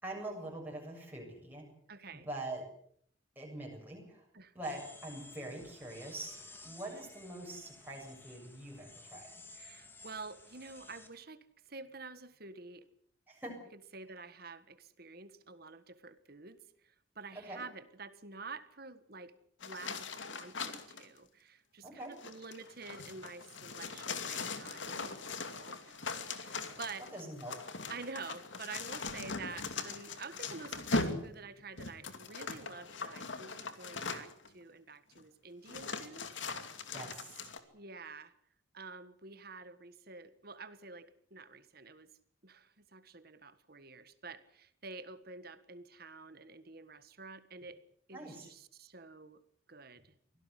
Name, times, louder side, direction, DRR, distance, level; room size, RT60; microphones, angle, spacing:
voice 1, 0.0-1.6 2.2-2.6 3.4-4.3 4.5-6.4 6.6-9.3 13.3-13.6 17.5-17.6 21.8-22.1 27.1-27.6 36.9-37.5 48.1-48.5, right 1 dB, 10° right, -2 dB, 7.4 m, -44 dB
voice 2, 1.9-2.3 4.3-4.5 9.5-12.8 13.7-19.3 19.6-25.2 25.5-27.1 27.9-36.3 37.7-38.3 38.7-42.1 42.4-47.8 48.1-49.4 49.7-50.1, right 4 dB, 50° right, 12 dB, 1.6 m, -49 dB
sound 1, 4.6-11.1, left 2 dB, 10° left, 2.7 m, -54 dB
sound 2, 19.6-21.1 22.1-34.5 35.2-35.3 35.7-37.6, left 3 dB, 75° left, 2.5 m, -40 dB
24.5 x 17.0 x 8.2 m, 0.65 s
head